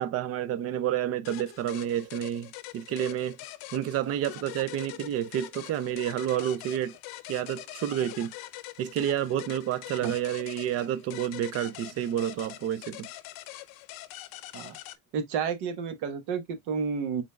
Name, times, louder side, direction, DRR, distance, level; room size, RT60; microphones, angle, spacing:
voice 1, 0.0-3.4 3.7-7.0 7.3-8.3 8.8-13.1, right 11 dB, 40° right, 0.5 m, -30 dB
sound 1, 1.2-15.0, left 15 dB, 65° left, 0.7 m, -44 dB
voice 2, 15.1-17.2, right 6 dB, 70° right, 1.3 m, -31 dB
5.2 x 4.1 x 2.3 m
cardioid pair, 165°, 40 cm